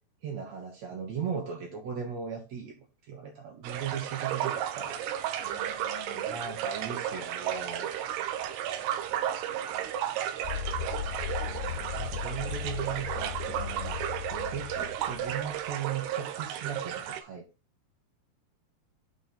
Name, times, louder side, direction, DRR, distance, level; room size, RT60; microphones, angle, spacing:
voice 1, 0.2-5.1 6.2-7.9 11.7-13.9 14.3-17.5, right 7 dB, 70° right, 1.6 m, -37 dB
sound 1, 3.6-17.2, right 11 dB, 85° right, 2.8 m, -33 dB
voice 2, 5.4-6.5 7.1-7.7 8.1-9.9 11.0-11.9 15.1-15.2, left 7 dB, 65° left, 2.7 m, -53 dB
sound 2, 10.4-15.7, left 10 dB, 85° left, 2.5 m, -37 dB
8.8 x 3.7 x 4.3 m
omnidirectional pair, 4.7 m